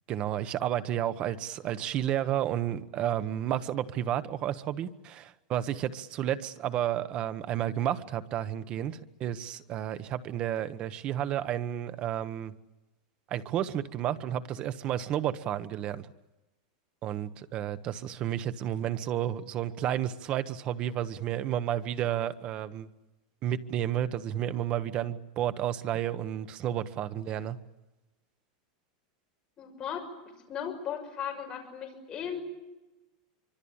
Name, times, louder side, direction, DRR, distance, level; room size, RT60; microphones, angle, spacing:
voice 1, 0.1-12.5 13.3-16.1 17.0-22.9 23.4-27.6, right 11 dB, 30° right, 1.2 m, -31 dB
voice 2, 29.6-30.1 30.5-32.4, left 8 dB, 20° left, 6.2 m, -36 dB
25.0 x 24.5 x 8.8 m
supercardioid pair, 170°, 4 cm